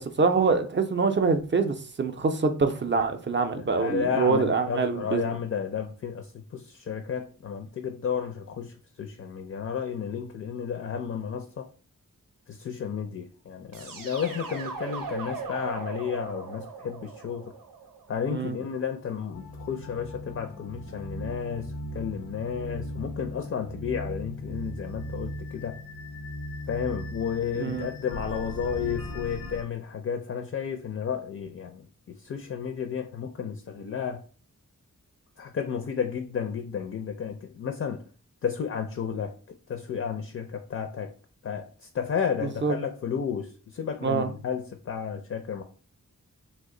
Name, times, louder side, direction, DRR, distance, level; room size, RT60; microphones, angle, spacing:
voice 1, 0.0-5.4 18.3-18.6 27.6-27.9 42.4-42.8 44.0-44.3, right 4 dB, 35° right, 0.4 m, -25 dB
voice 2, 3.6-8.7 9.0-11.7 12.5-17.5 18.1-25.8 26.7-31.8 32.2-34.2 35.4-38.0 38.4-39.3 39.7-41.1 41.4-45.6, left 7 dB, 45° left, 0.4 m, -32 dB
sound 1, 13.7-18.6, right 5 dB, 85° right, 0.6 m, -39 dB
sound 2, 19.3-29.6, left 1 dB, 85° left, 0.7 m, -38 dB
2.9 x 2.1 x 3.7 m
wide cardioid pair, 75°, 33 cm